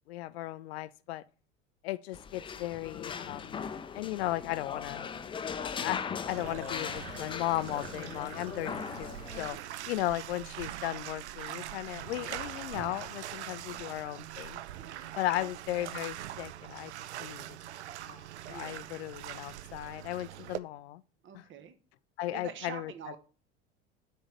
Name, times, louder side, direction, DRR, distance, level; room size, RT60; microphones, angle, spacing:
voice 1, 0.1-1.2 1.8-3.6 3.9-5.1 5.6-9.6 9.9-14.6 15.2-16.9 17.2-17.6 18.1-21.0 22.2-22.9, left 15 dB, 65° left, 0.5 m, -36 dB
sound 1, 2.1-9.5, left 6 dB, 15° left, 0.4 m, -39 dB
Bathtub (filling or washing), 6.3-20.6, right 13 dB, 75° right, 0.5 m, -43 dB
voice 2, 8.5-8.8 9.5-9.8 12.0-12.3 13.7-13.9 14.8-15.5 18.4-19.0 21.2-21.8 22.3-23.2, right 8 dB, 35° right, 1.0 m, -47 dB
6.2 x 4.6 x 6.5 m
figure-of-eight pair, 75°, 35 cm